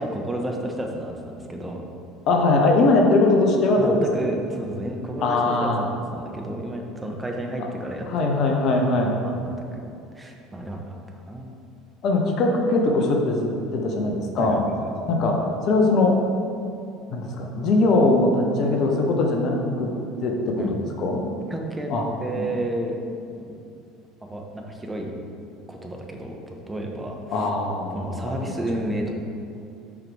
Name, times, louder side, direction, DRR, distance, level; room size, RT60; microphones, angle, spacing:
voice 1, 0.0-1.8 3.8-8.1 8.9-9.8 10.1-11.0 11.3-11.5 14.4-14.9 20.6-20.7 21.5-21.9 22.2-23.0 23.4-23.6 24.3-25.1 25.7-27.5 27.9-29.1, right 1 dB, 15° right, 1 dB, 1.2 m, -31 dB
voice 2, 2.3-4.3 5.2-5.8 8.1-9.1 12.0-14.6 15.0-15.4 15.7-16.1 17.1-19.9 20.2-20.6 21.0-21.3 21.9-22.0 22.4-22.5 27.3-28.5, left 2 dB, 50° left, 1 dB, 1.0 m, -21 dB
7.5 x 5.0 x 4.8 m, 2.6 s
hypercardioid pair, 65°, 0 cm